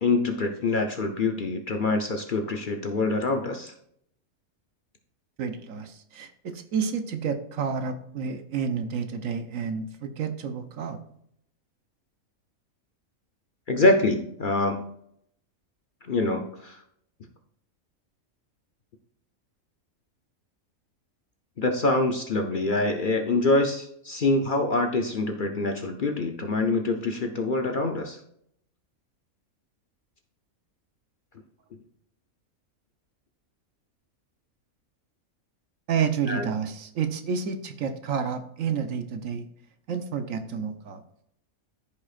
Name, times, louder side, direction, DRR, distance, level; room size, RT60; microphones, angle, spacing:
voice 1, 0.0-3.7 13.7-14.8 16.0-16.8 21.6-28.2 36.3-36.5, left 2 dB, 45° left, 4 dB, 0.7 m, -25 dB
voice 2, 5.4-11.0 35.9-39.4 39.9-41.0, right 6 dB, 70° right, 8 dB, 1.2 m, -30 dB
14.0 x 5.4 x 2.4 m, 0.71 s
omnidirectional pair, 1.5 m